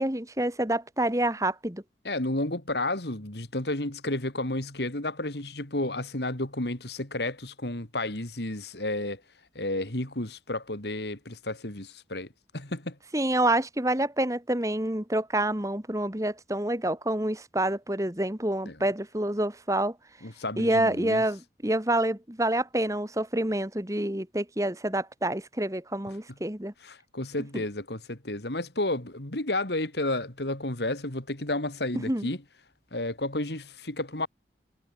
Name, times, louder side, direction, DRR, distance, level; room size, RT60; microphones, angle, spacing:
voice 1, 0.0-1.8 13.1-19.9 20.6-26.7 32.1-32.3, right 1 dB, 20° right, 1.7 m, -27 dB
voice 2, 2.0-9.2 9.5-12.3 12.5-13.0 18.6-18.8 20.2-21.2 26.8-32.4 32.9-34.3, left 2 dB, 70° left, 3.1 m, -31 dB
head